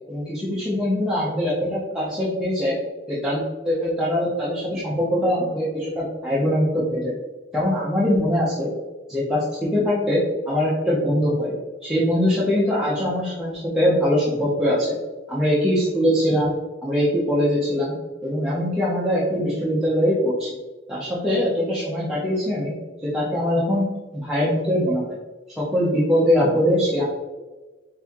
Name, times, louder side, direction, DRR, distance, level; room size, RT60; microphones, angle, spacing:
voice 1, 0.1-2.8 3.1-7.1 7.5-8.7 9.1-11.5 11.8-15.0 15.3-16.5 16.8-17.9 18.2-20.6 20.9-22.7 23.0-23.8 24.1-25.2 25.6-27.0, equal, 5° right, -9 dB, 0.7 m, -22 dB
4.1 x 3.5 x 2.9 m, 1.2 s
head